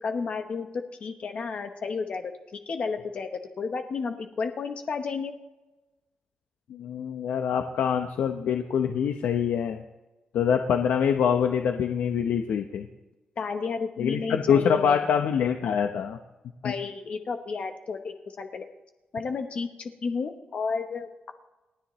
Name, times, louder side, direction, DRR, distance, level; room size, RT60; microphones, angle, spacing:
voice 1, 0.0-3.3 3.6-5.3 13.4-15.1 16.6-18.7 19.1-21.3, left 5 dB, 45° left, 6 dB, 0.9 m, -32 dB
voice 2, 6.7-9.8 10.3-12.9 14.0-16.2 16.6-16.7, left 7 dB, 90° left, 5 dB, 0.8 m, -25 dB
29.0 x 10.0 x 3.1 m, 1.1 s
wide cardioid pair, 170°, 3 cm